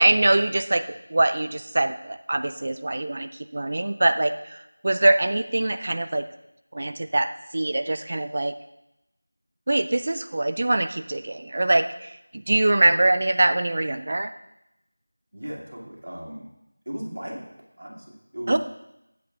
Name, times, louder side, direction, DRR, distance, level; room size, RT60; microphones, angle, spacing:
voice 1, 0.0-6.2 6.7-8.5 9.7-14.3 18.5-18.6, right 2 dB, 30° right, 10 dB, 0.3 m, -23 dB
voice 2, 15.3-16.5 16.9-17.5 17.8-18.6, equal, 70° right, -2 dB, 2.5 m, -36 dB
12.0 x 8.3 x 2.4 m, 0.86 s
figure-of-eight pair, 180°, 0 cm